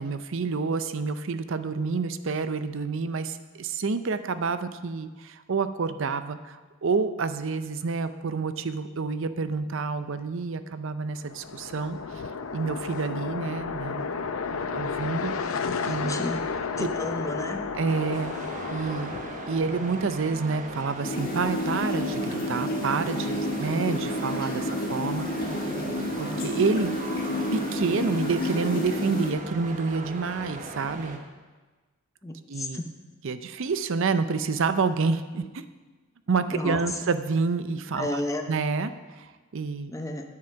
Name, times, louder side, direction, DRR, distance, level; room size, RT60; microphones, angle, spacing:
voice 1, 0.0-12.2 12.5-14.1 14.7-15.3 15.8-16.2 16.8-16.9 17.7-19.2 19.5-25.7 26.2-26.9 27.5-31.2 32.5-32.8 33.2-35.6 36.3-39.9, right 4 dB, 65° right, 12 dB, 0.6 m, -28 dB
sound 1, 11.2-20.2, left 5 dB, 75° left, 0.6 m, -32 dB
voice 2, 15.9-16.4 16.8-17.7 32.2-32.9 36.5-36.8 38.0-38.4 39.9-40.2, left 1 dB, 15° left, 4 dB, 0.7 m, -32 dB
sound 2, 17.9-31.2, right 1 dB, 35° right, 1.0 m, -38 dB
sound 3, 21.0-29.3, left 1 dB, 45° left, 1.4 m, -30 dB
9.4 x 7.8 x 5.7 m, 1.3 s
head